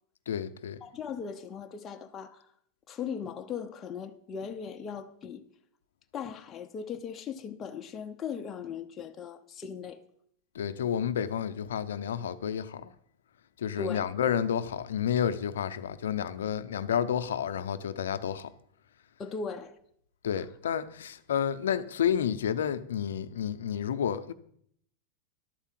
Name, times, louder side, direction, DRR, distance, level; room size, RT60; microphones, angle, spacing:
voice 1, 0.3-0.8 10.5-12.9 13.6-18.5 20.2-24.3, left 8 dB, 90° left, 0.6 m, -30 dB
voice 2, 0.8-2.5 2.9-5.4 6.1-10.0 13.8-14.0 19.2-19.8 20.4-20.5, left 6 dB, 25° left, 0.7 m, -38 dB
11.5 x 4.6 x 7.5 m
hypercardioid pair, 125°, 0 cm